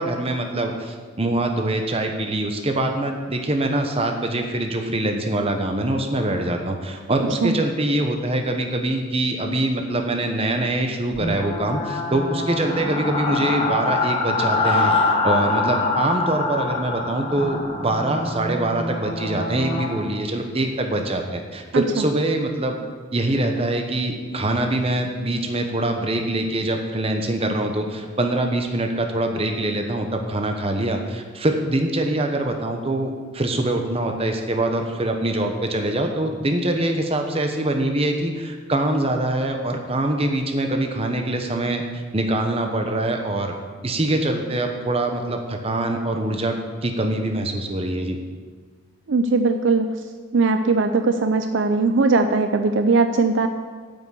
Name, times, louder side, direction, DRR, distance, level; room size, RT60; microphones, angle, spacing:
voice 1, 0.0-14.9 15.2-22.8 23.1-43.6 43.8-46.5 46.8-48.2, right 1 dB, 30° right, 4 dB, 1.0 m, -24 dB
sound 1, 11.1-20.0, left 3 dB, 30° left, 1.5 m, -24 dB
voice 2, 21.7-22.0 49.1-50.0 50.3-53.5, right 3 dB, 65° right, 7 dB, 0.5 m, -19 dB
8.9 x 6.0 x 8.2 m, 1.5 s
head